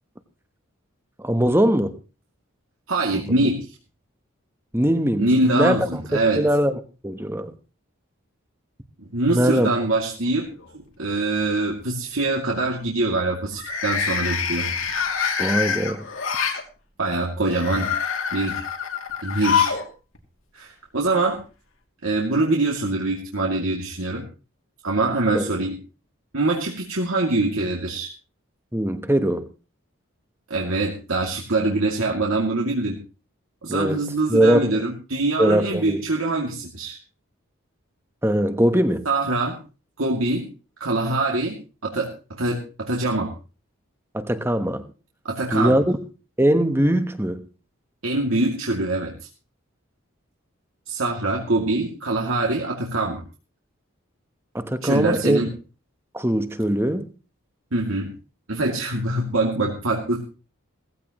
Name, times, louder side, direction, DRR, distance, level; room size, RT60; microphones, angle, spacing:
voice 1, 1.2-1.9 3.1-3.4 4.7-7.5 9.3-9.7 15.4-16.1 25.3-25.5 28.7-29.5 33.7-34.0 34.3-34.7 35.4-36.0 38.2-39.1 44.1-44.8 45.5-46.0 46.4-47.4 54.5-55.4 56.1-57.1, right 1 dB, 10° right, 1.0 m, -21 dB
voice 2, 2.9-3.7 5.2-6.4 9.0-10.5 11.0-14.7 17.0-17.9 18.3-18.6 19.2-19.7 20.5-21.4 22.0-24.2 24.8-25.8 26.3-28.1 30.5-33.0 33.6-37.0 39.1-39.6 40.0-40.5 40.8-41.6 41.8-43.3 45.2-45.8 48.0-49.3 50.9-53.2 54.8-55.5 57.7-58.1 58.5-60.2, right 2 dB, 80° right, 2.5 m, -24 dB
sound 1, 10.0-10.6 11.0-11.4 13.5-16.6 17.4-19.9 20.1-20.2 21.4-21.5, left 6 dB, 75° left, 2.6 m, -26 dB
18.0 x 15.0 x 3.0 m
head